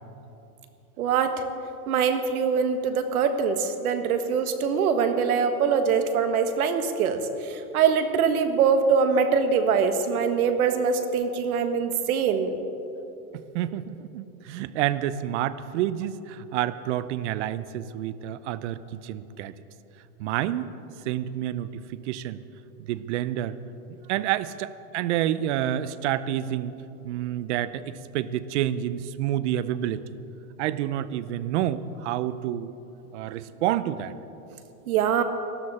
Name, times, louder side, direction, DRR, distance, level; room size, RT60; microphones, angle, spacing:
voice 1, 1.0-1.3 1.9-12.6 34.9-35.2, right 6 dB, 70° right, 8 dB, 1.6 m, -23 dB
voice 2, 13.5-19.5 20.2-20.8 21.0-22.4 22.9-23.6 23.9-26.8 27.0-30.0 30.6-32.7 33.1-34.1, right 12 dB, 50° right, 16 dB, 0.7 m, -29 dB
19.5 x 13.0 x 4.2 m, 2.9 s
supercardioid pair, 145°, 45 cm